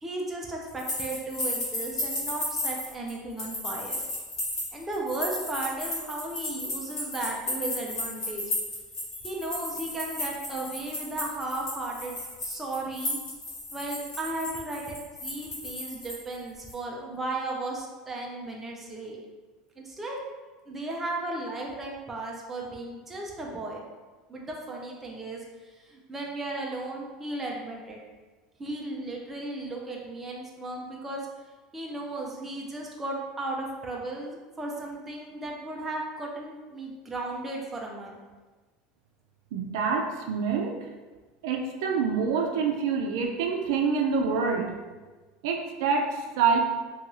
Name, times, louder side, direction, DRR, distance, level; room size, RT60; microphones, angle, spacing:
voice 1, 0.0-4.0 4.7-8.4 9.2-13.2 13.7-19.2 19.8-20.2 20.7-23.8 24.3-28.0 28.6-31.3 31.7-38.2, right 2 dB, 10° right, -2 dB, 0.4 m, -35 dB
sound 1, 0.7-16.3 16.7-16.8, left 1 dB, 30° left, 0.9 m, -34 dB
voice 2, 39.5-40.7 41.4-44.7 45.4-46.6, right 5 dB, 80° right, 2 dB, 0.4 m, -26 dB
2.6 x 2.3 x 2.9 m, 1.3 s
cardioid pair, 160°, 2 cm